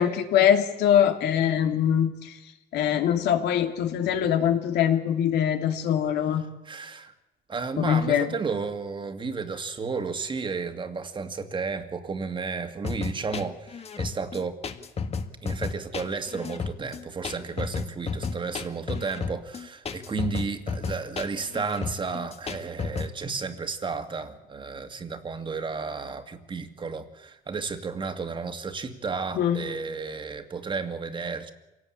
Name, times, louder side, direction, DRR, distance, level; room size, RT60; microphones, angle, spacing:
voice 1, 0.0-2.4 2.7-6.4 7.8-8.3 29.4-29.6, left 9 dB, 80° left, 5 dB, 3.0 m, -23 dB
voice 2, 6.6-7.1 7.5-14.6 15.4-31.5, right 4 dB, 30° right, 8 dB, 2.2 m, -33 dB
sound 1, 12.8-23.1, left 5 dB, 35° left, 1.9 m, -32 dB
26.5 x 18.0 x 8.8 m, 1.1 s
cardioid pair, 110°, 17 cm